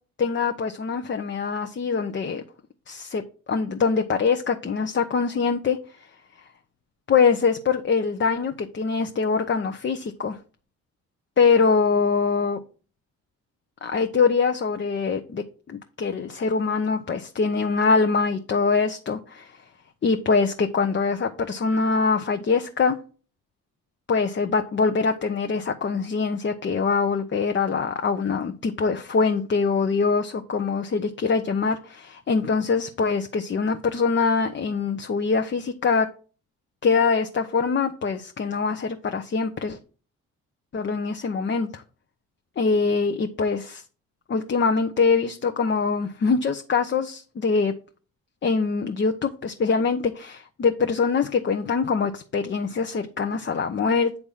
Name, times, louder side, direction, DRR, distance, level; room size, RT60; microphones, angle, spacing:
voice 1, 0.2-2.4 2.9-3.2 3.5-5.8 7.1-10.4 11.4-12.6 13.8-19.5 20.0-23.0 24.1-36.1 36.8-39.8 40.7-41.8 42.6-43.8 44.3-47.7 48.4-54.2, left 5 dB, 35° left, 0.8 m, -23 dB
8.3 x 3.4 x 5.6 m
supercardioid pair, 75°, 34 cm